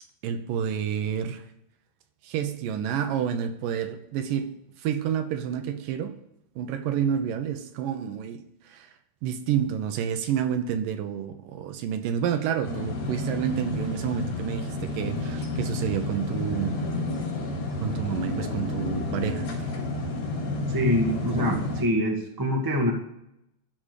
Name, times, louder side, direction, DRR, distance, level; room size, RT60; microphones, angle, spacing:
voice 1, 0.2-1.4 2.2-6.1 6.6-8.9 9.2-16.8 17.8-19.5, right 8 dB, 75° right, 8 dB, 2.4 m, -29 dB
sound 1, 12.6-21.8, left 2 dB, 75° left, 5.0 m, -30 dB
voice 2, 20.7-22.9, equal, 25° right, 0 dB, 0.4 m, -25 dB
13.5 x 5.1 x 8.3 m, 0.81 s
omnidirectional pair, 4.2 m